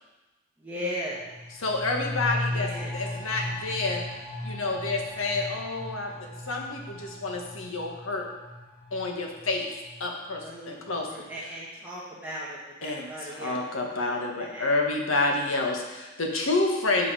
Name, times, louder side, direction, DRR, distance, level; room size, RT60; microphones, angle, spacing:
voice 1, 0.6-1.2 2.5-3.0 10.4-14.7, equal, 10° right, -7 dB, 1.3 m, -38 dB
sound 1, 1.1-10.5 10.8-10.9, left 1 dB, 15° left, 2.1 m, -37 dB
voice 2, 1.6-4.0 4.4-8.3 8.9-9.7 10.0-11.1 12.8-13.1 13.3-17.1, left 2 dB, 90° left, 1 dB, 1.4 m, -29 dB
7.8 x 5.4 x 5.5 m, 1.1 s
head